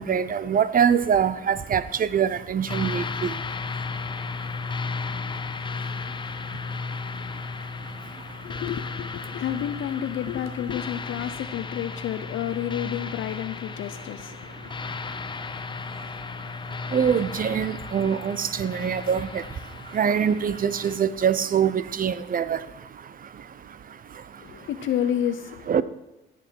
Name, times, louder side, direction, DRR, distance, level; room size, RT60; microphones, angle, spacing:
voice 1, 0.0-3.3 16.9-19.4 19.9-22.6 25.7-25.8, right 7 dB, 45° right, 0.7 m, -24 dB
sound 1, 2.7-21.0, left 4 dB, 25° left, 0.6 m, -34 dB
voice 2, 8.4-14.7 24.4-25.7, left 10 dB, 80° left, 0.7 m, -30 dB
17.0 x 7.8 x 4.6 m
cardioid pair, 90°, 20 cm